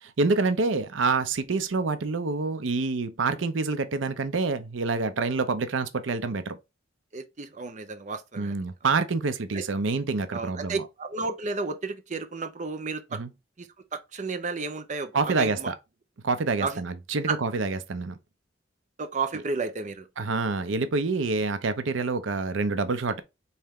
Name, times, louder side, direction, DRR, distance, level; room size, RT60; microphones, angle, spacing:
voice 1, 0.0-6.6 8.4-10.8 13.1-13.3 15.1-15.8 16.2-18.2 20.2-23.2, right 3 dB, 85° right, 0.6 m, -27 dB
voice 2, 7.1-8.5 9.5-9.6 10.3-13.2 13.6-15.7 16.6-16.8 17.3-17.4 19.0-20.1, right 4 dB, 40° right, 0.6 m, -32 dB
4.2 x 3.3 x 3.5 m
head